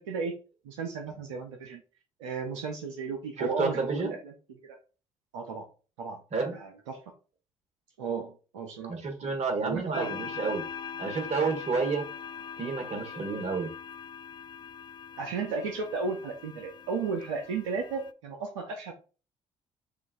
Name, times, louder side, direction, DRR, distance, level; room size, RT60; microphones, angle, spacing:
voice 1, 0.1-0.4 0.6-1.8 2.2-4.8 5.3-5.7 6.0-6.2 6.5-7.0 8.0-8.9 9.6-10.1 15.2-18.9, right 5 dB, 85° right, 3 dB, 0.5 m, -34 dB
voice 2, 3.4-4.1 6.3-6.5 8.9-10.6 11.0-12.0 12.6-13.7, right 4 dB, 50° right, 4 dB, 1.3 m, -30 dB
sound 1, 9.9-18.1, left 7 dB, 30° left, 0.3 m, -42 dB
6.7 x 2.4 x 2.5 m, 0.35 s
hypercardioid pair, 50°, 15 cm